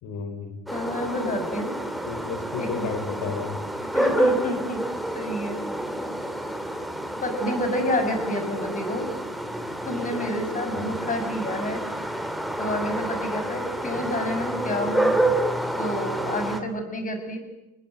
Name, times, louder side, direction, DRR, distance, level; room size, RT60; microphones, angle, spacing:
voice 1, 0.0-0.6 2.0-3.6 10.7-11.0, left 5 dB, 60° left, 8 dB, 4.1 m, -33 dB
voice 2, 0.7-1.7 2.6-2.9 3.9-4.8 5.1-5.6 7.2-9.1 9.8-11.9 12.6-15.2 15.8-17.4, left 1 dB, 20° left, 7 dB, 6.4 m, -29 dB
sound 1, 0.7-16.6, right 1 dB, ahead, 2.6 m, -28 dB
29.0 x 19.5 x 8.8 m, 0.96 s
cardioid pair, 150°, 35 cm